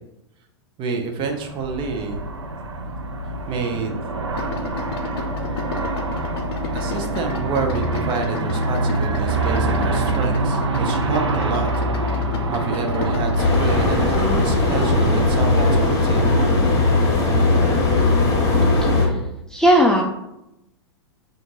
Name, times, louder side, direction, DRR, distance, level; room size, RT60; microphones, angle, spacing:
voice 1, 0.8-2.3 3.5-3.9 6.7-11.7 12.5-16.7, right 4 dB, 35° right, 4 dB, 0.8 m, -28 dB
Aircraft, 1.3-18.6, right 2 dB, 90° right, 0.5 m, -26 dB
Idling, 4.3-13.9, left 3 dB, 60° left, 0.6 m, -32 dB
sound 1, 13.4-19.1, left 2 dB, 25° left, 1.4 m, -18 dB
voice 2, 18.8-19.2 19.5-20.0, equal, 5° left, -1 dB, 0.4 m, -17 dB
4.4 x 2.6 x 3.9 m, 0.87 s
hypercardioid pair, 105°, 14 cm